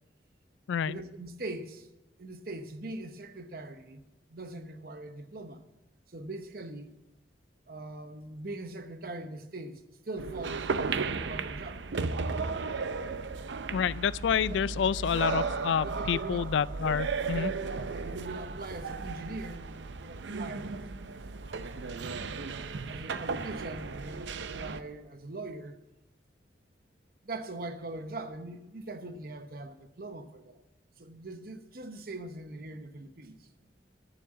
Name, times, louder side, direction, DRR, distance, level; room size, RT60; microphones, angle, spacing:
voice 1, 0.8-1.9 2.2-5.6 6.1-6.9 7.7-11.8 14.5-14.6 15.0-15.1 15.8-16.5 17.7-22.2 22.9-25.8 27.2-30.6 31.0-33.5, right 2 dB, 50° right, 0.9 m, -42 dB
sound 1, 10.2-24.8, right 4 dB, 75° right, 0.6 m, -35 dB
voice 2, 13.7-17.5, left 7 dB, 80° left, 0.3 m, -28 dB
9.3 x 7.4 x 8.5 m
head